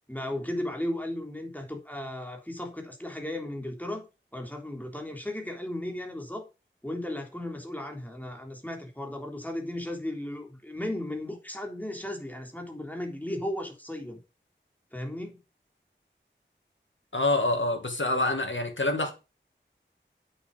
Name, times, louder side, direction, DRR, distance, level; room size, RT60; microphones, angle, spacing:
voice 1, 0.1-4.0 4.3-6.4 6.8-14.2 14.9-15.4, left 1 dB, 10° left, 3.6 m, -35 dB
voice 2, 17.1-19.1, left 2 dB, 75° left, 2.4 m, -26 dB
8.5 x 7.0 x 5.5 m
wide cardioid pair, 45°, 20 cm